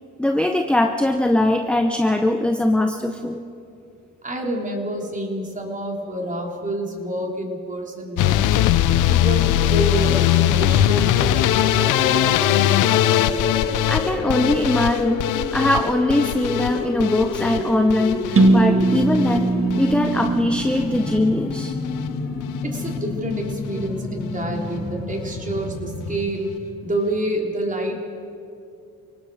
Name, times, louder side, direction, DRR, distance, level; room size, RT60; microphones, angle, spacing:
voice 1, 0.2-3.4 13.9-15.3 15.5-19.5 19.8-21.7, left 1 dB, 5° left, 5 dB, 0.9 m, -21 dB
voice 2, 4.2-12.8 22.6-26.5 26.8-28.0, right 1 dB, 25° right, 0 dB, 3.6 m, -28 dB
sound 1, 8.2-20.3 20.6-21.2 21.5-22.1 22.4-22.6 23.0-23.1 23.3-23.4, left 12 dB, 90° left, 0.8 m, -21 dB
sound 2, 11.2-26.1, left 3 dB, 60° left, 3.5 m, -29 dB
sound 3, 18.4-22.2, right 2 dB, 45° right, 1.4 m, -21 dB
29.0 x 18.0 x 5.0 m, 2.6 s
cardioid pair, 90°, 30 cm